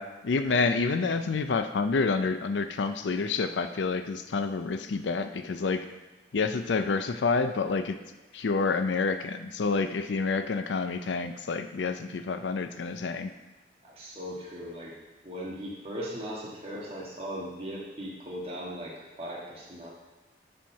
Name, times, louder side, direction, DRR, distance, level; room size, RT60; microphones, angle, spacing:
voice 1, 0.0-5.9 6.3-8.0 8.3-13.3, left 4 dB, 90° left, 9 dB, 0.5 m, -28 dB
voice 2, 13.8-14.9 15.2-19.9, equal, 35° right, -5 dB, 1.6 m, -38 dB
7.4 x 4.4 x 5.6 m, 1.2 s
head